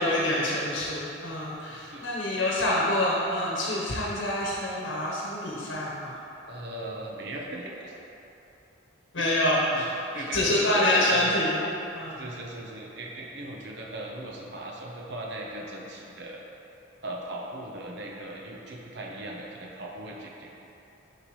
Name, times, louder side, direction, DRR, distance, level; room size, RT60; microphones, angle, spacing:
voice 1, 0.0-6.2 9.1-9.9 10.1-11.6 11.9-12.2, left 1 dB, 70° left, -5 dB, 1.0 m, -26 dB
voice 2, 1.7-2.3 6.5-7.9 9.2-9.3 9.7-11.4 12.2-16.4 17.0-20.5, right 1 dB, 60° right, -2 dB, 0.8 m, -38 dB
6.8 x 5.7 x 3.1 m, 2.9 s
head